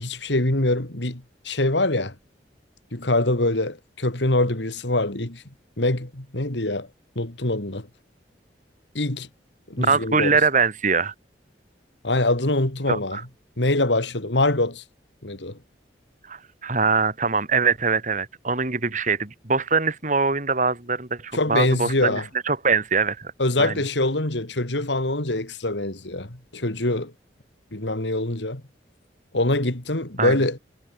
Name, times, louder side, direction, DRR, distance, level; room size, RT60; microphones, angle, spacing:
voice 1, 0.0-2.1 2.9-5.4 5.8-6.9 7.1-7.9 8.9-9.3 9.7-10.4 12.0-13.2 13.6-14.8 15.2-15.6 21.3-22.2 23.4-27.1 27.7-28.6 29.3-30.6, left 2 dB, 80° left, 3.0 m, -24 dB
voice 2, 9.8-11.1 12.9-13.2 16.3-23.3 23.6-23.8 30.2-30.4, right 4 dB, 45° right, 3.2 m, -23 dB
head